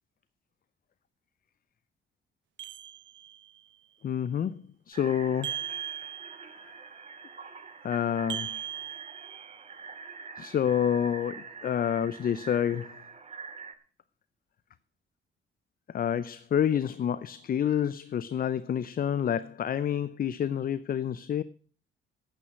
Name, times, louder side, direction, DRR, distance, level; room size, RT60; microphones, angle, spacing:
sound 1, 2.6-3.6 5.4-6.7 8.3-9.8, right 11 dB, 70° right, 1.1 m, -39 dB
voice 1, 4.0-4.5 4.9-5.6 7.8-8.6 10.4-13.0 15.9-21.4, left 9 dB, 45° left, 0.6 m, -28 dB
sound 2, 4.9-13.7, right 5 dB, 35° right, 2.2 m, -45 dB
11.0 x 9.3 x 7.4 m
cardioid pair, 90°, 20 cm